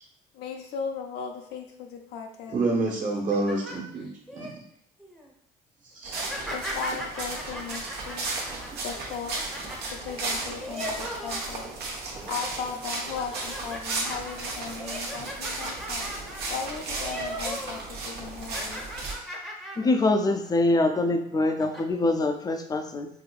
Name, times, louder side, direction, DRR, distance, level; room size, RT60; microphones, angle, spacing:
voice 1, 0.3-2.6 6.5-8.4 8.8-9.4 9.9-11.7 12.3-16.1 16.5-18.8, left 6 dB, 80° left, 3 dB, 0.5 m, -37 dB
voice 2, 2.5-4.1 4.3-4.5 5.9-6.2, right 2 dB, 50° right, -2 dB, 1.3 m, -27 dB
sound 1, 3.1-4.5 5.0-5.3 6.1-11.8 12.2-12.6 13.1-17.8 18.1-20.0 20.4-20.6 21.3-21.8, equal, ahead, 0.7 m, -39 dB
sound 2, 6.0-19.1, right 3 dB, 75° right, 1.0 m, -35 dB
voice 3, 19.8-23.1, left 2 dB, 20° left, 6 dB, 0.4 m, -24 dB
4.9 x 2.6 x 2.3 m, 0.68 s
cardioid pair, 110°, 17 cm